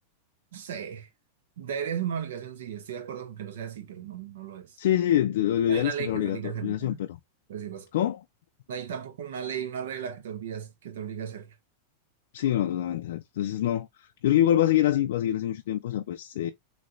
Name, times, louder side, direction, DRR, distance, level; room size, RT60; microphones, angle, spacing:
voice 1, 0.5-1.1 1.6-5.0 5.7-7.0 7.5-7.9 8.7-11.5 16.4-16.5, right 8 dB, 80° right, 1.3 m, -35 dB
voice 2, 4.8-7.2 7.9-8.2 12.3-16.5, left 12 dB, 65° left, 0.5 m, -25 dB
3.3 x 3.2 x 3.9 m
supercardioid pair, 180°, 0 cm